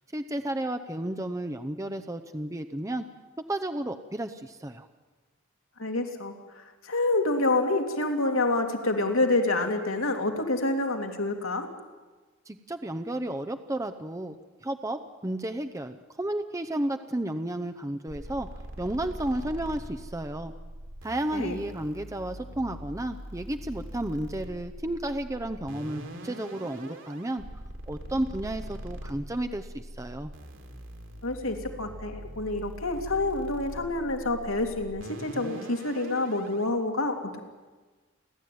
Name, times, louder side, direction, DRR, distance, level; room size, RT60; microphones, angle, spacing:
voice 1, 0.1-3.0 3.5-4.9 12.5-18.5 18.8-20.5 21.0-27.4 27.9-30.3, right 1 dB, 15° right, 7 dB, 0.8 m, -32 dB
voice 2, 5.8-11.7 21.3-21.6 31.2-37.4, left 2 dB, 75° left, 4 dB, 2.8 m, -28 dB
sound 1, 18.1-36.6, right 1 dB, 65° right, 3.2 m, -42 dB
30.0 x 12.5 x 9.5 m, 1.3 s
head